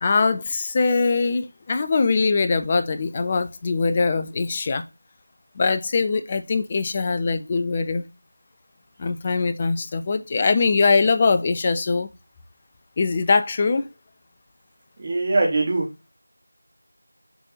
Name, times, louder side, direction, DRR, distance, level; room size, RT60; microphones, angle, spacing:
voice 1, 0.0-4.8 5.6-8.0 9.0-12.1 13.0-13.9, left 4 dB, 15° left, 0.4 m, -22 dB
voice 2, 15.0-15.9, right 2 dB, 20° right, 1.5 m, -21 dB
6.7 x 3.4 x 4.1 m
figure-of-eight pair, 170°, 0 cm